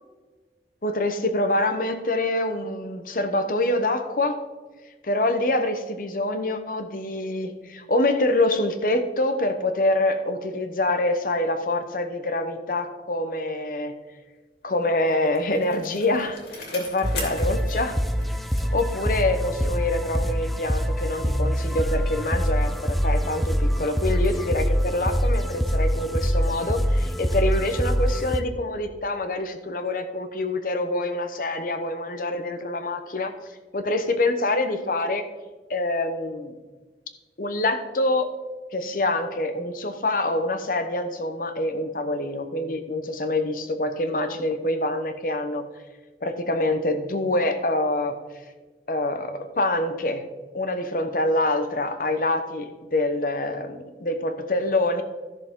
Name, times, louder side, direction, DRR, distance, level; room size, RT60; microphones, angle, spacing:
voice 1, 0.8-4.4 5.0-13.9 14.6-18.0 18.7-33.3 33.7-35.2 35.7-36.5 37.4-38.3 38.7-45.7 46.2-48.2 48.9-50.2 50.5-55.0, left 2 dB, 50° left, 8 dB, 0.9 m, -26 dB
Bicycle, 14.8-19.7 20.1-20.2, left 3 dB, 70° left, 2.8 m, -40 dB
sound 1, 17.0-28.4, equal, ahead, 0.4 m, -24 dB
13.5 x 6.7 x 3.7 m, 1.3 s
head